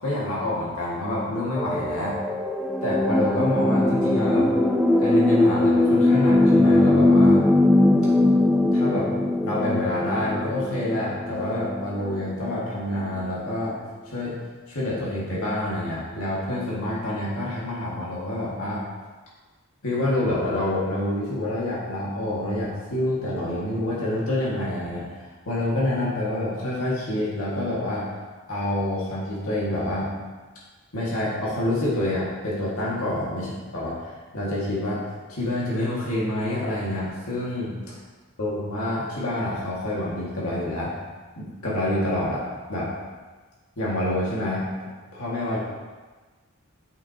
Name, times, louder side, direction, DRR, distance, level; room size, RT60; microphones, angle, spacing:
voice 1, 0.0-2.2 2.8-4.5 5.0-7.4 8.7-9.1 9.4-13.8 14.1-14.4 14.7-18.8 19.8-28.1 28.5-30.1 30.9-33.9 34.3-35.0 35.3-37.7 38.4-40.9 41.4-42.4 42.7-42.9 43.8-45.6, left 1 dB, 80° left, -6 dB, 1.8 m, -27 dB
sound 1, 1.6-12.3 13.2-13.3, left 2 dB, ahead, 0.3 m, -20 dB
8.7 x 6.6 x 2.8 m, 1.3 s
head